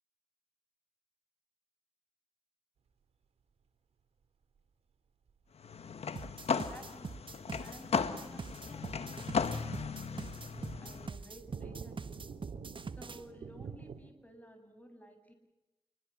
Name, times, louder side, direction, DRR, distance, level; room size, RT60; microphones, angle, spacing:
sound 1, 5.3-5.4 7.3-14.1, right 6 dB, 90° right, 2.5 m, -50 dB
sound 2, 5.6-11.1, left 5 dB, 75° left, 1.6 m, -36 dB
sound 3, 6.2-13.2, right 4 dB, 55° right, 1.4 m, -44 dB
voice 1, 6.5-7.1 7.6-10.2 10.8-12.3 12.9-15.3, equal, 15° left, 7 dB, 7.8 m, -54 dB
28.0 x 22.5 x 7.7 m, 0.98 s
cardioid pair, 50°, 11 cm